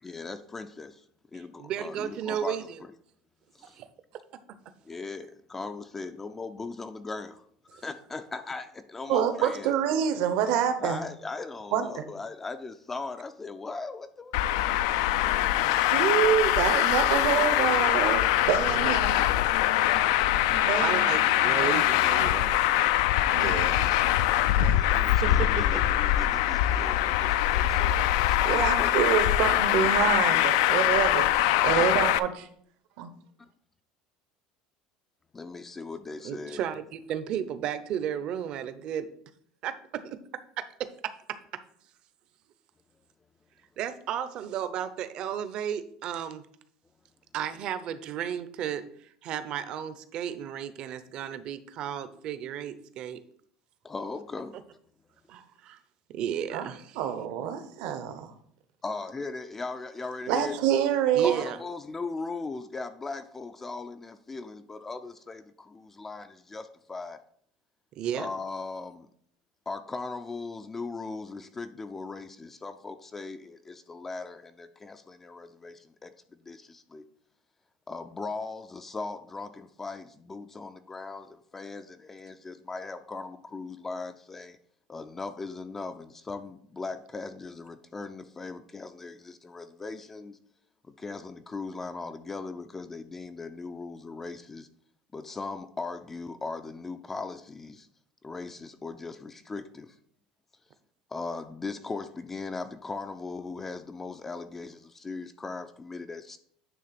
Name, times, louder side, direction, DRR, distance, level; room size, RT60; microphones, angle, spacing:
voice 1, 0.0-1.0 1.3-2.9 3.5-3.8 4.9-7.3 7.8-9.7 10.8-15.0 24.6-28.4 28.7-29.6 35.3-36.6 53.8-54.6 58.8-60.6 61.2-67.2 68.1-69.1 69.7-77.0 77.9-84.6 84.9-90.4 90.8-94.7 95.1-97.9 98.2-100.0 101.1-106.4, left 3 dB, 15° left, 8 dB, 0.4 m, -39 dB
voice 2, 1.6-2.8 3.6-3.9 15.7-15.9 18.7-19.2 20.8-22.6 25.2-25.8 36.2-39.1 39.6-39.7 43.8-46.4 47.3-53.2 55.3-55.8 56.1-57.0 61.1-61.6 67.9-68.3, right 9 dB, 40° right, 11 dB, 0.6 m, -33 dB
voice 3, 9.1-11.0 11.7-11.9 15.8-19.2 20.5-21.8 22.2-22.3 23.3-23.9 24.5-24.8 28.4-32.5 33.0-33.1 56.5-56.6 57.0-58.3 60.3-61.5, right 9 dB, 65° right, 9 dB, 1.0 m, -27 dB
Traffic noise roadway noise, 14.3-32.2, left 13 dB, 80° left, 0.4 m, -23 dB
9.3 x 3.4 x 5.9 m, 0.63 s
cardioid pair, 165°, 2 cm